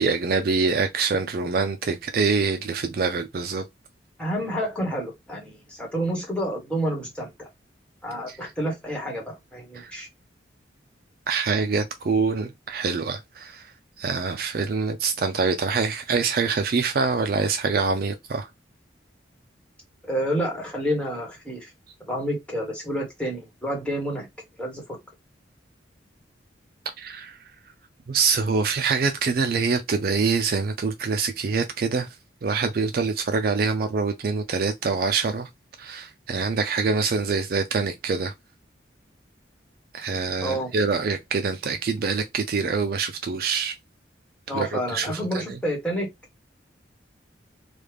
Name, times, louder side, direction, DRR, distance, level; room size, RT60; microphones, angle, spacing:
voice 1, 0.0-3.6 8.3-8.5 9.7-9.9 11.3-13.7 14.0-18.5 27.0-27.4 28.1-32.2 32.4-35.5 35.8-38.3 39.9-43.8 44.5-45.6, right 4 dB, 50° right, 0.4 m, -25 dB
voice 2, 4.2-7.5 8.0-10.1 20.0-21.7 22.1-24.3 24.6-24.8 40.4-40.7 44.5-46.1, equal, 5° left, 1.3 m, -29 dB
3.3 x 2.3 x 3.3 m
head